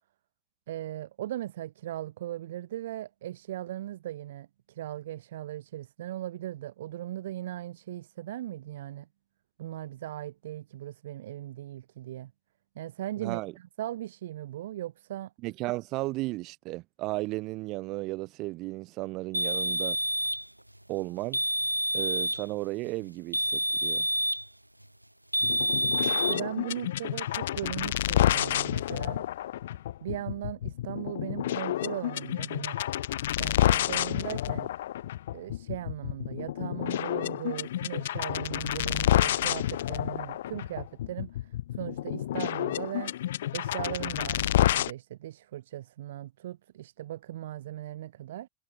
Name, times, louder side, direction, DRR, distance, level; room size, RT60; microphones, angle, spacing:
voice 1, 0.7-9.1 9.6-12.3 12.8-15.3 26.1-29.2 30.0-32.8 33.4-34.7 35.3-43.1 43.5-48.5, right 13 dB, 60° right, 1.8 m, -38 dB
voice 2, 13.2-13.5 15.4-20.0 20.9-21.4 21.9-24.1, right 20 dB, 40° right, 6.6 m, -34 dB
sound 1, 19.3-20.5 21.3-22.5 23.3-24.5 25.3-26.4, right 1 dB, 90° right, 0.7 m, -28 dB
sound 2, 25.4-44.9, left 12 dB, 60° left, 2.3 m, -29 dB
figure-of-eight pair, 90°, 0 cm